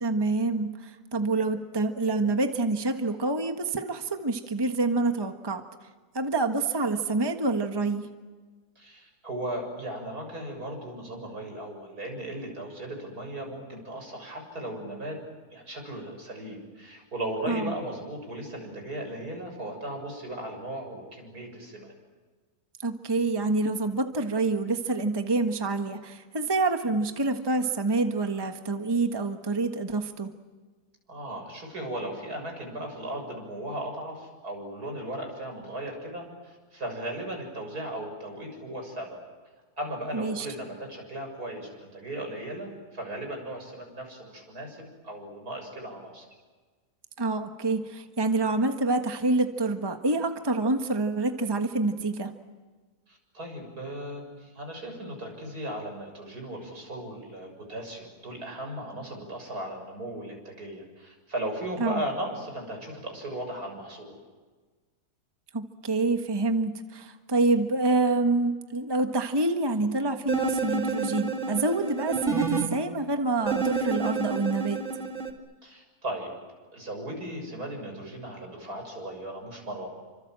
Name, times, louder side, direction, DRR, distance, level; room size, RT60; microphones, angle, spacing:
voice 1, 0.0-5.6 6.1-8.1 17.5-17.7 22.8-30.3 40.1-40.5 47.2-52.3 61.8-62.0 65.5-74.8, right 3 dB, 15° right, 6 dB, 1.4 m, -27 dB
voice 2, 8.8-21.9 31.1-39.2 39.8-46.3 53.1-64.2 75.6-76.3 76.7-79.9, right 1 dB, 75° right, 3 dB, 7.5 m, -37 dB
sound 1, 70.3-72.7 73.5-75.3, right 5 dB, 50° right, 2.5 m, -29 dB
30.0 x 25.5 x 7.6 m, 1.4 s
omnidirectional pair, 1.6 m